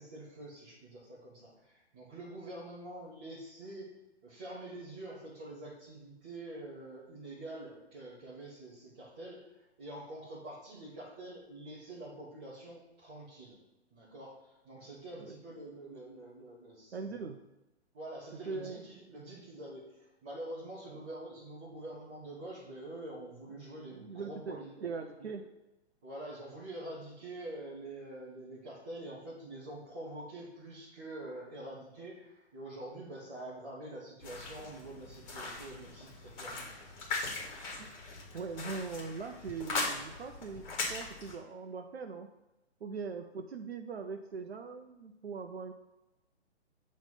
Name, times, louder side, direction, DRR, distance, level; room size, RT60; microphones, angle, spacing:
voice 1, 0.0-3.9 4.2-9.4 9.8-13.6 13.9-17.2 17.9-24.7 25.2-25.4 26.0-36.9, right 1 dB, 10° right, -8 dB, 0.4 m, -46 dB
voice 2, 16.9-17.4 18.5-18.8 20.9-21.0 23.9-25.5 37.8-37.9 38.3-40.6 40.9-42.3 42.8-45.7, right 5 dB, 65° right, 5 dB, 0.6 m, -41 dB
sound 1, 34.2-41.3, left 3 dB, 30° left, 1.7 m, -40 dB
7.2 x 3.1 x 5.4 m, 0.99 s
figure-of-eight pair, 130°, 34 cm